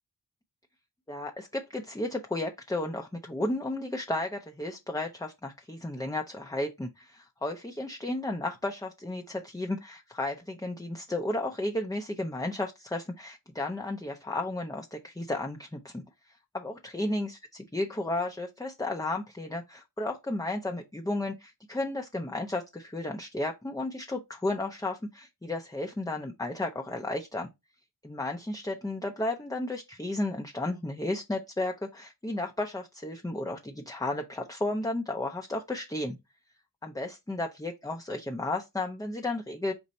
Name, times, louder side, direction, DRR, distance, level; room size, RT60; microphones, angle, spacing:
voice 1, 1.1-16.0 16.5-17.4 17.7-27.5 28.0-36.2 36.8-39.7, left 2 dB, 10° left, 0.5 m, -33 dB
4.2 x 2.6 x 4.0 m
wide cardioid pair, 55°, 42 cm